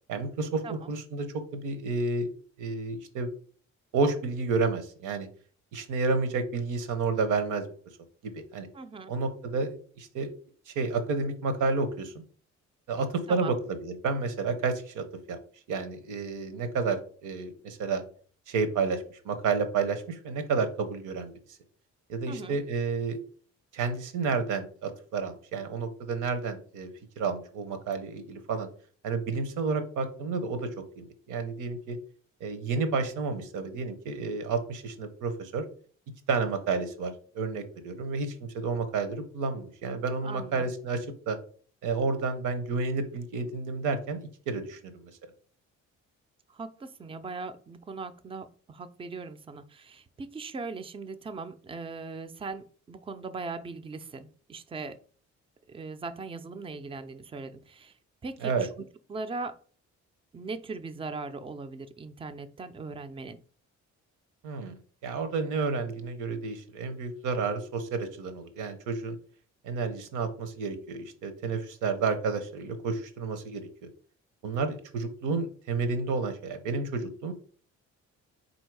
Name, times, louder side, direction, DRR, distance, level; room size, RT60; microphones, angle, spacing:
voice 1, 0.1-0.6 0.9-2.3 2.6-3.3 3.9-5.3 5.7-7.6 8.2-8.7 9.1-10.3 10.7-12.1 12.9-13.6 13.8-15.4 15.7-18.0 18.5-21.3 22.1-23.2 23.7-26.9 27.2-28.7 29.0-32.0 32.4-35.6 36.3-41.4 41.8-45.1 58.4-58.7 64.4-64.7 65.0-69.2 69.6-73.6 74.4-77.3, right 4 dB, 85° right, 9 dB, 0.8 m, -30 dB
voice 2, 8.7-9.1 13.3-13.5 22.3-22.6 40.2-40.6 46.5-55.0 55.7-57.9 58.2-58.7 59.1-59.6 60.3-63.4, right 4 dB, 20° right, 11 dB, 0.4 m, -39 dB
4.0 x 2.6 x 4.6 m, 0.43 s
cardioid pair, 90°, 30 cm